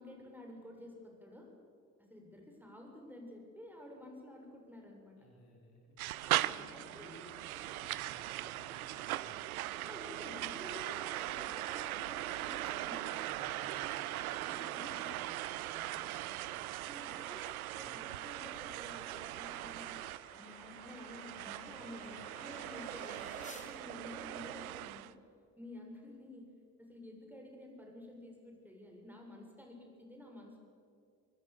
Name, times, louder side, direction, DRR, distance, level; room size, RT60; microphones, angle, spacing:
voice 1, 0.0-1.5 2.1-5.1 6.4-7.2 9.7-13.1 14.5-15.2 16.8-17.5 17.8-19.9 20.3-25.2 25.6-26.5 26.8-30.6, left 1 dB, 5° right, 1 dB, 7.0 m, -51 dB
voice 2, 5.2-9.6 12.9-16.7 17.7-18.0 21.7-21.9, left 1 dB, 75° left, -2 dB, 4.7 m, -58 dB
sound 1, 6.0-25.1, right 15 dB, 80° right, 0.6 m, -40 dB
sound 2, 15.4-23.7, left 2 dB, 15° left, 4.3 m, -58 dB
24.0 x 22.0 x 7.0 m, 2.4 s
figure-of-eight pair, 40°, 43 cm